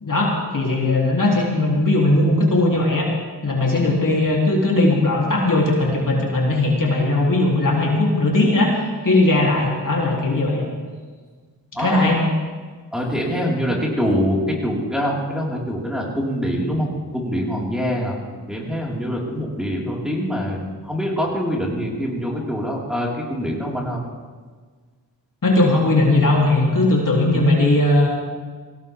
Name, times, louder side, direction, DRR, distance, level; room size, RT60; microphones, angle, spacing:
voice 1, 0.0-3.1 3.4-10.7 11.8-12.2 25.4-28.1, left 2 dB, 50° left, -3 dB, 3.5 m, -18 dB
voice 2, 11.7-12.1 12.9-18.2 18.5-24.0, equal, ahead, -4 dB, 4.9 m, -24 dB
19.0 x 17.0 x 3.7 m, 1.5 s
cardioid pair, 45°, 41 cm